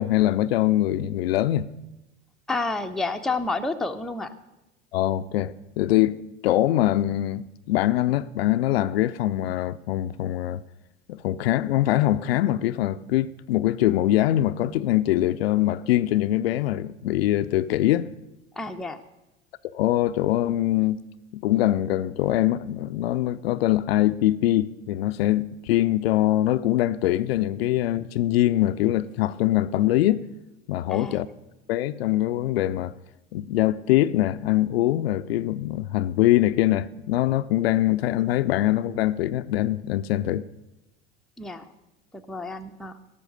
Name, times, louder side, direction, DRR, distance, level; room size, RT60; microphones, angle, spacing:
voice 1, 0.0-1.7 4.9-10.6 11.1-18.1 19.7-21.0 21.3-30.3 30.7-31.3 31.7-32.9 33.3-40.4, left 14 dB, 60° left, 0.5 m, -23 dB
voice 2, 2.5-4.3 18.6-19.0 30.9-31.3 41.4-41.7 42.1-43.0, left 3 dB, ahead, 0.6 m, -30 dB
16.5 x 6.3 x 6.5 m
figure-of-eight pair, 75°, 34 cm